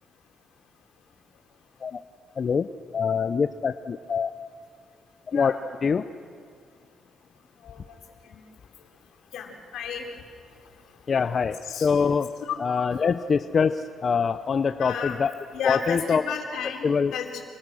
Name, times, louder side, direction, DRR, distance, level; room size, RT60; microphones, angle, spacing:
voice 1, 2.4-2.7 2.9-4.3 5.3-5.5 5.8-6.0 11.1-12.3 12.6-15.3 15.6-16.2 16.8-17.1, left 6 dB, 45° left, 10 dB, 0.7 m, -24 dB
voice 2, 9.3-10.0 11.6-11.9 12.4-12.6 14.8-15.2 15.5-17.4, left 7 dB, 80° left, 1 dB, 4.4 m, -32 dB
28.0 x 25.0 x 6.4 m, 2.1 s
cardioid pair, 90°, 0 cm